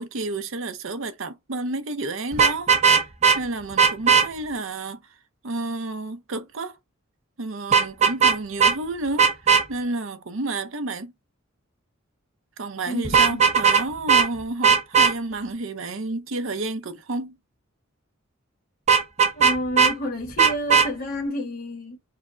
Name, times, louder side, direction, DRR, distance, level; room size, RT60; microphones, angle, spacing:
voice 1, 0.0-2.7 3.3-5.0 5.4-6.8 7.4-9.3 9.7-11.1 12.6-17.4, right 2 dB, 65° right, 0.7 m, -30 dB
Vehicle horn car horn honking, 2.3-3.4 3.8-4.3 7.7-8.3 8.6-8.7 9.2-9.6 13.0-13.8 14.1-14.3 14.6-15.1 18.9-19.9 20.4-20.9, right 6 dB, 30° right, 0.8 m, -17 dB
voice 2, 12.9-13.5 19.3-22.0, equal, 45° left, 1.0 m, -30 dB
4.9 x 2.2 x 3.8 m
head